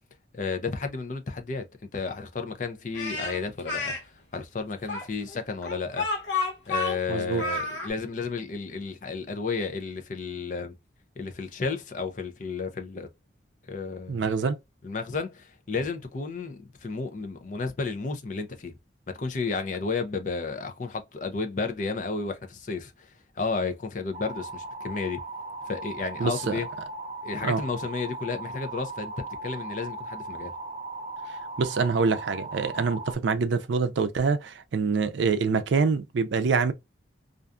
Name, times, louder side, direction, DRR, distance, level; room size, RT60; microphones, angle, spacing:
voice 1, 0.3-1.7 1.9-6.1 6.7-10.7 11.2-13.1 13.7-14.3 14.8-18.7 19.1-25.2 25.7-26.7 27.2-30.5, left 4 dB, 45° left, 0.5 m, -32 dB
Speech, 2.9-4.0 4.9-7.9, left 3 dB, 75° left, 1.1 m, -30 dB
voice 2, 7.1-7.4 14.1-14.6 26.2-26.6 27.4-27.6 31.6-36.7, right 4 dB, 80° right, 0.4 m, -25 dB
sound 1, 24.1-33.1, right 2 dB, 30° right, 0.6 m, -38 dB
2.5 x 2.3 x 2.4 m
head